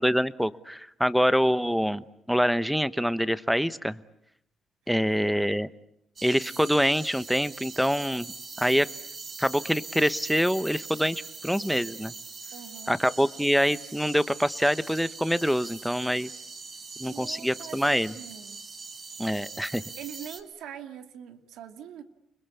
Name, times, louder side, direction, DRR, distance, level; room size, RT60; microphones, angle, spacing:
voice 1, 0.0-4.0 4.9-5.7 6.2-8.3 8.6-8.9 9.4-12.1 12.9-16.3 17.0-18.1 19.2-19.8, equal, ahead, 15 dB, 1.1 m, -25 dB
sound 1, 6.2-20.4, right 4 dB, 40° right, 4.0 m, -42 dB
voice 2, 12.5-13.0 17.1-18.6 20.0-22.0, right 9 dB, 85° right, 7 dB, 2.5 m, -43 dB
29.5 x 22.0 x 8.5 m, 0.76 s
cardioid pair, 90°, 0 cm